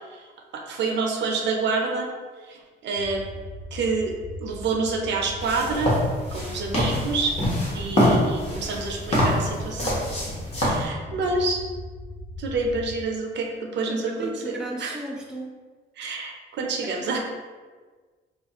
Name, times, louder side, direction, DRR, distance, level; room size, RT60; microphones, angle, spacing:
voice 1, 0.5-2.1 2.5-3.3 3.7-5.9 6.3-7.3 7.7-10.0 10.6-11.6 12.4-14.9 16.0-17.2, right 3 dB, 65° right, 1 dB, 0.5 m, -28 dB
sound 1, 3.0-12.9, left 1 dB, 65° left, 0.5 m, -39 dB
sound 2, 5.4-10.8, equal, 30° left, 1.0 m, -25 dB
voice 2, 13.8-15.6 16.8-17.2, right 1 dB, 5° right, -1 dB, 0.4 m, -36 dB
2.4 x 2.2 x 2.8 m, 1.4 s
cardioid pair, 90°, 20 cm